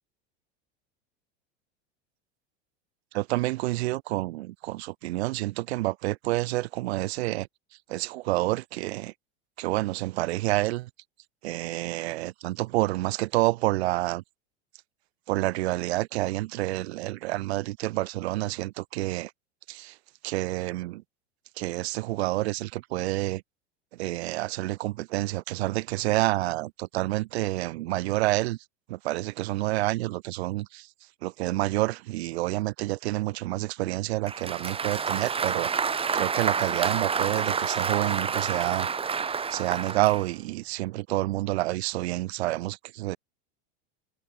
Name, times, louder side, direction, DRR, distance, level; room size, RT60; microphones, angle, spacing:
voice 1, 3.1-7.5 7.9-9.1 9.6-10.9 11.4-14.2 15.3-19.3 19.7-20.0 20.2-21.0 21.6-23.4 23.9-28.6 28.9-30.9 31.2-35.7 36.1-38.9 39.5-43.2, right 18 dB, 75° right, 3.3 m, -28 dB
Applause, 34.3-40.3, right 6 dB, 15° right, 1.2 m, -29 dB
hypercardioid pair, 110°, 32 cm